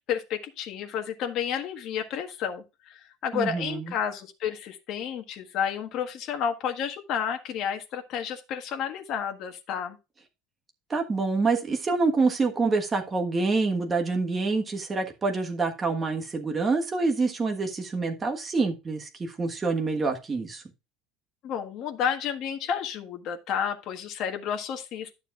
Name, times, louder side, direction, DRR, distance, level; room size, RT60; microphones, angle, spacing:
voice 1, 0.1-10.0 21.4-25.1, left 8 dB, 40° left, 5 dB, 1.5 m, -31 dB
voice 2, 3.3-3.9 10.9-20.6, right 3 dB, 15° right, 3 dB, 1.4 m, -26 dB
11.5 x 7.1 x 2.4 m, 0.26 s
cardioid pair, 170°, 0 cm